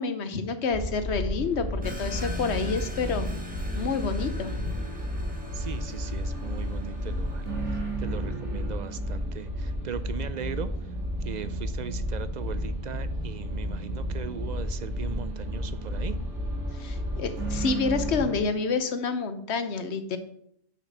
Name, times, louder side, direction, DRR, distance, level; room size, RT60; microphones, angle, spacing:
voice 1, 0.0-3.3 3.8-4.7 16.7-20.2, left 4 dB, 70° left, 10 dB, 1.1 m, -28 dB
sound 1, 0.7-18.4, equal, 85° right, 2.5 m, -32 dB
sound 2, 1.8-8.1, left 1 dB, 10° right, 1.2 m, -41 dB
voice 2, 5.5-10.7 11.2-16.2, right 7 dB, 55° right, 13 dB, 0.5 m, -38 dB
6.7 x 5.9 x 6.4 m, 0.70 s
omnidirectional pair, 1.2 m